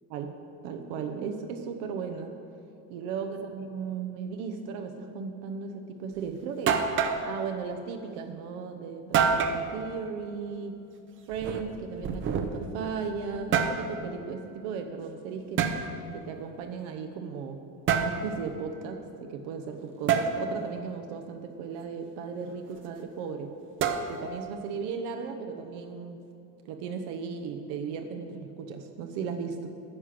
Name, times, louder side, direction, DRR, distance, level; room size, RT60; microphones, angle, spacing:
voice 1, 0.6-2.3 2.9-6.8 7.2-10.8 11.3-15.7 16.1-17.6 17.9-23.5 24.1-26.2 26.6-29.7, right 5 dB, 80° right, 5 dB, 1.0 m, -36 dB
sound 1, 6.2-6.3 6.7-7.3 9.1-9.6 11.3-12.8 13.3-13.8 15.6-15.8 17.9-18.2 20.1-20.3 23.8-24.4, right 7 dB, 35° right, 0.7 m, -26 dB
10.0 x 5.9 x 8.5 m, 2.6 s
cardioid pair, 160°, 36 cm